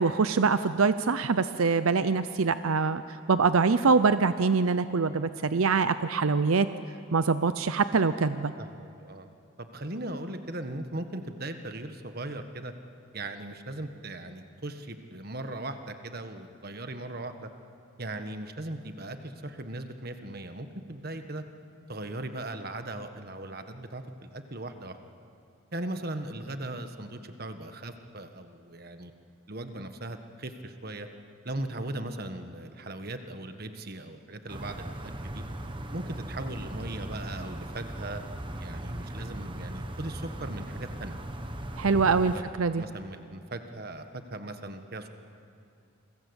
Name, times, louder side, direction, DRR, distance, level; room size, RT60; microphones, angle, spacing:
voice 1, 0.0-3.0 3.3-6.7 7.1-8.5 41.8-42.8, right 4 dB, 85° right, 12 dB, 0.7 m, -24 dB
voice 2, 8.6-9.3 9.6-12.7 13.1-17.5 18.0-21.4 21.9-25.0 25.7-29.1 29.5-31.1 31.4-35.4 35.9-38.2 38.6-41.2 41.8-42.5 42.7-45.1, right 1 dB, 45° right, 7 dB, 1.5 m, -38 dB
Air tone in calm residential suburbs, 34.5-42.4, right 1 dB, 25° right, 1.3 m, -38 dB
28.5 x 22.5 x 8.2 m, 2.5 s
head